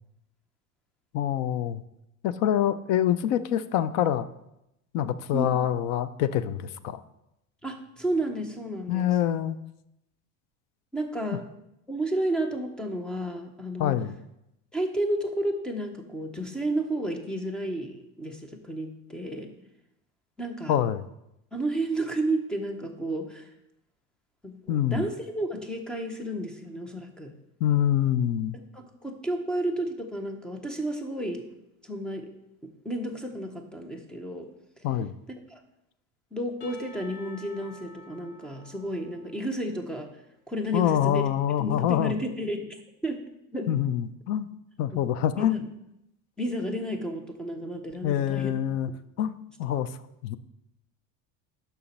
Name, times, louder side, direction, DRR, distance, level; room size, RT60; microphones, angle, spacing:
voice 1, 1.1-1.8 2.2-4.3 4.9-7.0 8.9-9.6 13.8-14.2 20.7-21.0 24.7-25.1 27.6-28.6 34.8-35.1 40.7-42.1 43.7-44.5 44.8-45.5 48.0-48.9 49.2-49.3 49.6-49.9 50.2-50.4, left 10 dB, 50° left, 15 dB, 0.5 m, -25 dB
voice 2, 7.6-9.2 10.9-11.4 11.9-14.0 14.7-19.5 20.4-20.8 21.5-23.5 24.4-27.3 28.7-31.4 31.8-32.3 32.6-34.5 35.5-35.6 36.3-40.1 40.5-41.2 41.6-42.8 43.0-43.2 43.5-43.7 44.9-45.0 45.4-45.7 46.4-48.5, right 1 dB, ahead, 5 dB, 0.5 m, -32 dB
Percussion / Church bell, 36.6-40.3, left 2 dB, 80° left, 1.5 m, -51 dB
7.0 x 5.8 x 5.2 m, 0.84 s
cardioid pair, 170°, 33 cm